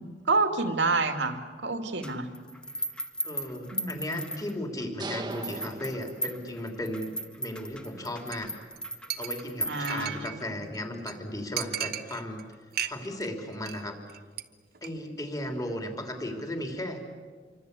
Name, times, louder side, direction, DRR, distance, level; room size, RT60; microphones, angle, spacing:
voice 1, 0.0-2.3 3.7-4.2 9.7-10.3, right 3 dB, 85° right, 6 dB, 2.6 m, -28 dB
sound 1, 2.0-4.8 5.3-10.5, equal, 5° left, 1.4 m, -37 dB
voice 2, 3.2-8.5 9.2-12.4 12.9-14.0 14.8-17.0, left 1 dB, 20° left, 3 dB, 3.3 m, -35 dB
sound 2, 5.0-6.8, right 2 dB, 25° right, 1.4 m, -39 dB
Chink clink, 8.3-8.5 8.8-8.9 9.1-10.4 10.7-10.8 11.1-11.2 11.6-12.4 12.7-13.3 13.5-13.8 14.1-14.4 14.7-14.9, right 11 dB, 60° right, 1.2 m, -35 dB
27.5 x 24.5 x 8.3 m, 1.5 s
head